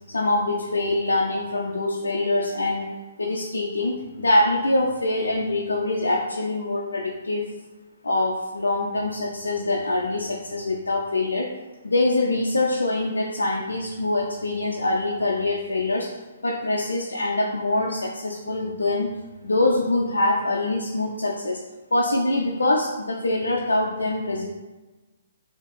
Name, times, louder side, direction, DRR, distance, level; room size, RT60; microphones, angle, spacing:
voice 1, 0.1-2.9 3.2-7.4 8.0-11.5 11.8-16.1 16.4-19.1 19.4-21.6 21.9-24.5, left 2 dB, 85° left, -1 dB, 0.6 m, -24 dB
4.0 x 2.9 x 3.6 m, 1.2 s
hypercardioid pair, 135°, 0 cm